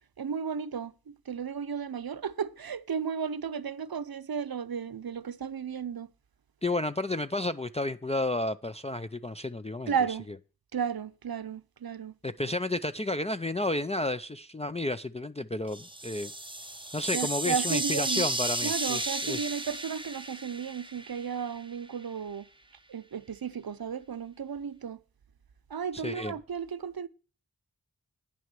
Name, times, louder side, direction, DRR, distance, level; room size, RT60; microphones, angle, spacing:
voice 1, 0.2-0.9 1.3-6.1 9.9-10.3 10.7-12.1 17.1-18.3 18.6-22.4 22.9-25.0 25.7-27.1, right 7 dB, 75° right, 0.7 m, -34 dB
voice 2, 6.6-10.4 12.2-16.3 16.9-19.6 25.9-26.4, left 2 dB, 20° left, 0.4 m, -32 dB
sound 1, 15.7-21.6, right 2 dB, 15° right, 0.7 m, -33 dB
9.8 x 6.2 x 7.4 m
wide cardioid pair, 50°, 37 cm